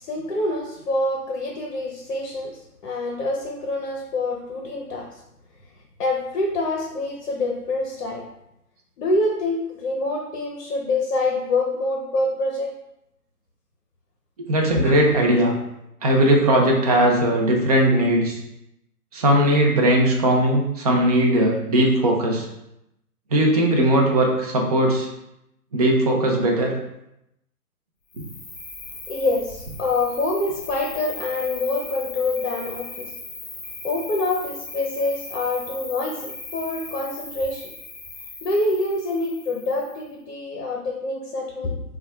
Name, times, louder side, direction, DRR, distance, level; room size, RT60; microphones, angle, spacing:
voice 1, 0.0-2.5 2.8-5.1 6.0-8.2 9.0-12.7 14.8-15.0 29.1-33.1 33.8-37.6 38.4-41.8, left 2 dB, 55° left, 0 dB, 0.7 m, -26 dB
voice 2, 14.5-15.5 16.0-18.4 19.1-22.5 23.3-25.1 25.7-26.7, right 1 dB, 25° right, 0 dB, 0.4 m, -19 dB
Cricket, 28.1-40.1, left 3 dB, 30° left, 1.3 m, -38 dB
5.3 x 2.3 x 2.3 m, 0.84 s
hypercardioid pair, 130°, 47 cm